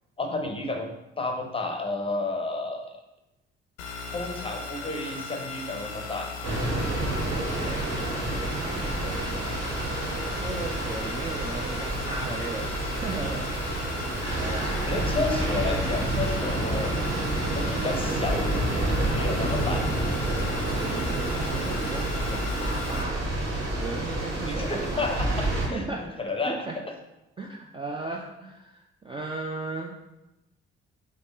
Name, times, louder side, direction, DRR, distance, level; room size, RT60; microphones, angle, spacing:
voice 1, 0.2-0.9 1.2-2.9 4.1-6.3 8.6-8.9 14.2-16.9 17.5-18.9 19.1-19.9 24.4-25.9 26.2-26.6, left 2 dB, 15° left, 3 dB, 0.7 m, -31 dB
sound 1, 3.8-23.0, left 4 dB, 65° left, 0.6 m, -37 dB
sound 2, 6.4-25.7, right 2 dB, 50° right, 1.1 m, -29 dB
voice 2, 7.3-8.0 8.8-9.4 10.3-14.0 14.3-14.7 20.7-23.2 23.8-25.3 25.7-26.0 26.5-26.8 27.4-29.9, right 3 dB, 15° right, 0 dB, 0.4 m, -37 dB
3.7 x 3.5 x 3.7 m, 0.98 s
figure-of-eight pair, 40°, 34 cm